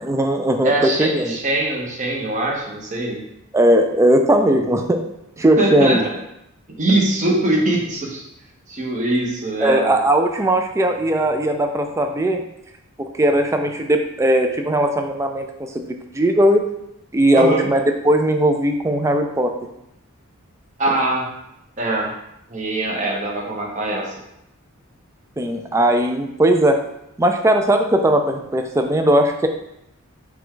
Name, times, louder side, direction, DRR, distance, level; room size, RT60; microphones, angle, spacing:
voice 1, 0.1-1.4 3.5-5.0 5.4-6.0 9.6-12.4 13.0-15.5 15.7-16.6 17.1-19.5 25.4-26.8 27.2-29.5, right 1 dB, 15° right, 5 dB, 0.3 m, -18 dB
voice 2, 0.6-3.2 5.6-6.0 6.7-8.2 8.7-9.9 17.3-17.7 20.8-21.3 21.8-22.1 22.5-24.1, right 2 dB, 35° right, -1 dB, 0.9 m, -22 dB
5.9 x 2.3 x 3.7 m, 0.82 s
head